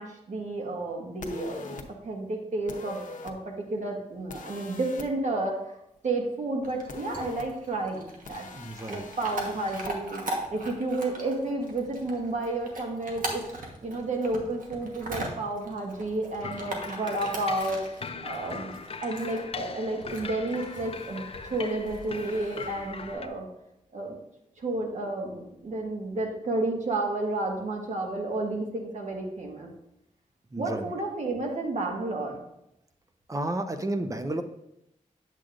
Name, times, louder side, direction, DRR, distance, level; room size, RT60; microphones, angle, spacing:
voice 1, 0.0-5.6 6.0-8.5 8.9-10.2 10.5-13.5 13.8-23.5 23.9-24.1 24.6-29.7 30.6-32.4, right 2 dB, 60° right, 1 dB, 1.5 m, -31 dB
sound 1, 1.2-1.8 2.7-3.3 4.3-5.1 6.9-7.4 8.3-9.9, left 3 dB, 70° left, 0.8 m, -42 dB
Chewing mastication / Dog, 6.6-23.1, right 1 dB, 75° right, 1.3 m, -41 dB
voice 2, 8.6-9.1 30.5-30.9 33.3-34.4, right 1 dB, 25° right, 8 dB, 0.6 m, -31 dB
sound 2, 16.4-23.3, left 4 dB, 45° left, 0.5 m, -40 dB
8.6 x 7.5 x 2.5 m, 0.83 s
wide cardioid pair, 85°, 14 cm